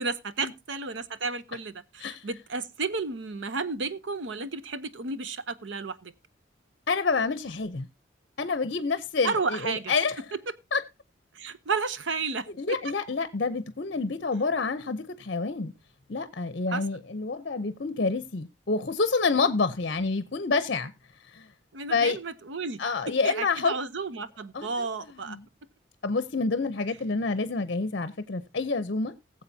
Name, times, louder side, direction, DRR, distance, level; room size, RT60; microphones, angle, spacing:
voice 1, 0.0-6.1 9.2-9.9 10.3-10.4 11.3-12.8 16.7-16.8 21.7-25.4, right 4 dB, 75° right, 0.8 m, -32 dB
voice 2, 6.9-7.9 8.4-10.2 10.7-10.8 12.6-15.7 16.1-20.9 21.3-21.5 21.9-22.2 22.8-23.7 24.5-25.5 26.0-29.1, left 4 dB, 55° left, 0.7 m, -28 dB
19.0 x 7.6 x 2.7 m
head